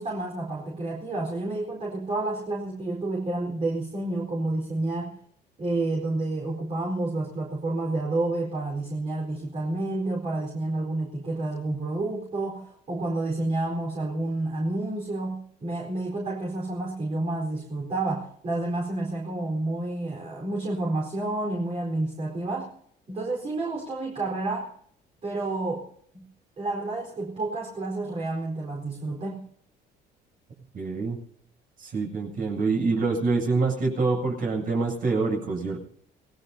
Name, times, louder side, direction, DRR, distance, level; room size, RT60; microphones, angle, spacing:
voice 1, 0.0-5.1 5.6-22.7 23.1-24.7 25.2-26.2 26.6-29.4, right 2 dB, 35° right, -2 dB, 4.4 m, -30 dB
voice 2, 30.7-31.2 31.8-35.8, right 3 dB, 55° right, -1 dB, 7.8 m, -26 dB
27.0 x 18.0 x 2.8 m, 0.66 s
cardioid pair, 110°, 17 cm